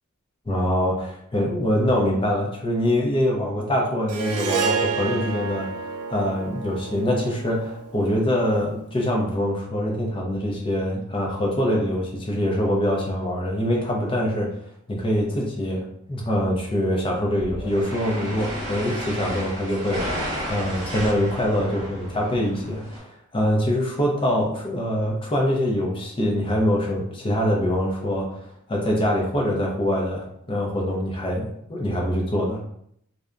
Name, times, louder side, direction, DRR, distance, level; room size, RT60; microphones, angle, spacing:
voice 1, 0.5-5.7 6.1-14.5 14.9-20.1 20.5-32.6, equal, 25° left, -1 dB, 0.5 m, -24 dB
Harp, 4.1-8.5, right 5 dB, 80° right, 0.5 m, -29 dB
sound 1, 17.4-23.0, equal, 20° right, 1.2 m, -32 dB
2.7 x 2.1 x 2.4 m, 0.70 s
head